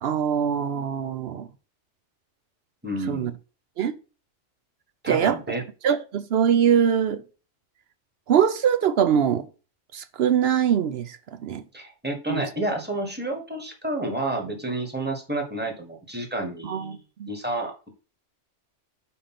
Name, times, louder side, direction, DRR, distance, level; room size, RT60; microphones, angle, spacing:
voice 1, 0.0-1.5 3.1-3.3 3.8-4.0 5.1-5.4 5.8-7.2 8.3-9.5 9.9-11.6 12.3-12.4 16.6-17.3, right 8 dB, 65° right, 0.8 m, -23 dB
voice 2, 2.8-3.3 5.0-5.6 11.7-17.0 17.3-17.9, right 2 dB, 10° right, 1.4 m, -30 dB
5.1 x 4.4 x 5.7 m
omnidirectional pair, 1.2 m